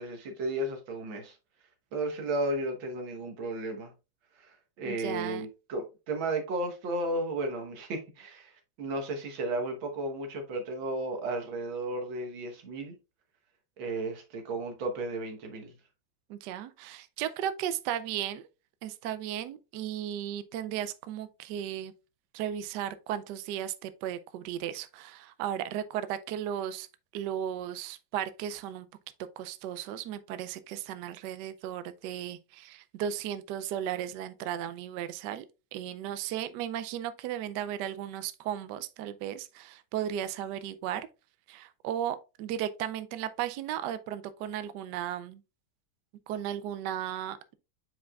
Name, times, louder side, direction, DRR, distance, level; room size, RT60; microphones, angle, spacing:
voice 1, 0.0-1.4 1.9-3.9 4.4-8.5 8.8-13.0 13.8-15.7, right 2 dB, 90° right, 2.0 m, -34 dB
voice 2, 4.8-5.5 16.3-18.4 18.8-21.9 22.3-26.9 27.1-28.9 29.4-35.4 35.7-41.1 41.5-45.4 46.3-47.5, right 10 dB, 70° right, 1.1 m, -35 dB
8.4 x 4.8 x 2.3 m
omnidirectional pair, 2.1 m